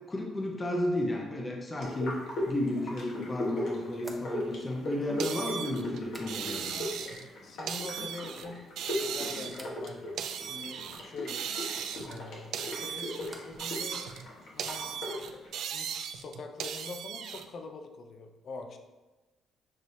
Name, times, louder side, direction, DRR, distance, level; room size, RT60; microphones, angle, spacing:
voice 1, 0.1-2.1 2.5-6.7, left 1 dB, 25° left, 0 dB, 0.7 m, -33 dB
sound 1, 1.8-15.5, left 1 dB, 75° left, 1.2 m, -39 dB
sound 2, 4.0-6.8 7.1-7.7 8.0-8.6 9.5-9.8 12.3-13.7 14.0-14.6, right 1 dB, 10° right, 0.8 m, -53 dB
sound 3, 5.2-7.3 7.7-8.5 8.8-11.0 11.3-12.2 12.5-14.3 14.6-17.4, right 8 dB, 80° right, 0.3 m, -37 dB
voice 2, 6.7-7.1 7.4-11.5 12.0-14.1 14.5-14.9 15.7-18.8, left 3 dB, 55° left, 5 dB, 0.5 m, -44 dB
6.5 x 3.0 x 2.7 m, 1.2 s
cardioid pair, 90°, 0 cm